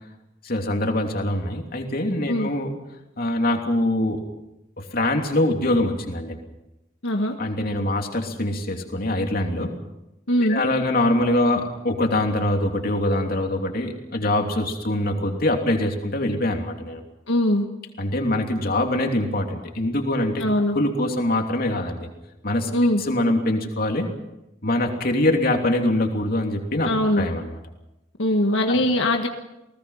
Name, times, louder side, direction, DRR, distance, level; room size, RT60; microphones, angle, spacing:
voice 1, 0.4-2.7 3.2-4.2 4.8-6.4 7.4-9.7 10.4-17.0 18.0-20.4 20.7-22.1 22.4-22.7 23.0-24.1 24.6-26.9 27.2-27.5 28.7-28.8, left 1 dB, 50° left, 3 dB, 2.9 m, -23 dB
voice 2, 7.0-7.3 10.3-10.6 17.3-17.6 20.4-20.8 22.7-23.0 26.8-27.3 28.2-29.3, left 1 dB, 85° left, 3 dB, 1.6 m, -21 dB
29.0 x 18.5 x 5.7 m, 0.93 s
head